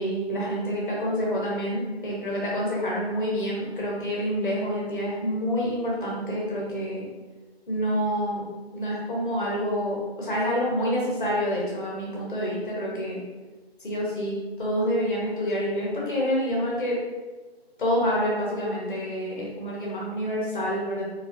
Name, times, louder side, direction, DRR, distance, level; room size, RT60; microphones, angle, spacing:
voice 1, 0.0-7.0 7.7-8.4 8.7-13.2 13.8-17.0 17.8-21.0, equal, 50° left, -4 dB, 1.3 m, -27 dB
3.9 x 2.6 x 2.5 m, 1.3 s
figure-of-eight pair, 150°, 32 cm